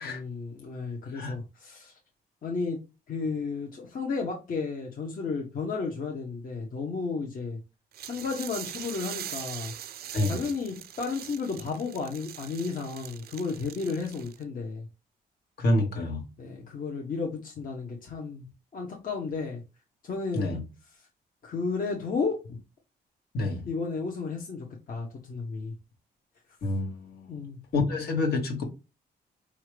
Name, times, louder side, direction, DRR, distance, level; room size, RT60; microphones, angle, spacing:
voice 1, 0.0-2.0 2.4-2.8 3.1-7.6 8.0-9.7 10.3-14.8 16.4-18.5 18.7-19.6 20.0-20.6 21.4-22.6 23.7-25.7 27.3-27.6, left 4 dB, 55° left, 1.1 m, -33 dB
sound 1, 7.9-14.4, right 11 dB, 70° right, 0.5 m, -42 dB
voice 2, 15.6-16.2 20.3-20.6 23.3-23.7 26.6-27.4 27.7-28.6, left 2 dB, 75° left, 1.6 m, -28 dB
4.9 x 2.9 x 3.2 m
cardioid pair, 95°, 17 cm